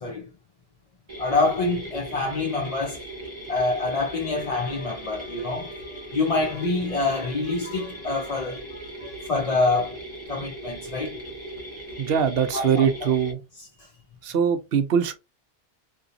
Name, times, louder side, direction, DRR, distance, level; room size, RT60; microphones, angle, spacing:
sound 1, 1.1-13.3, right 1 dB, 30° right, 1.2 m, -38 dB
voice 1, 1.2-3.0 3.5-10.0 10.3-11.2 12.5-12.9, left 3 dB, 40° left, 0.7 m, -26 dB
voice 2, 12.0-13.4 14.2-15.1, right 7 dB, 70° right, 0.8 m, -22 dB
3.4 x 2.9 x 2.6 m
omnidirectional pair, 1.1 m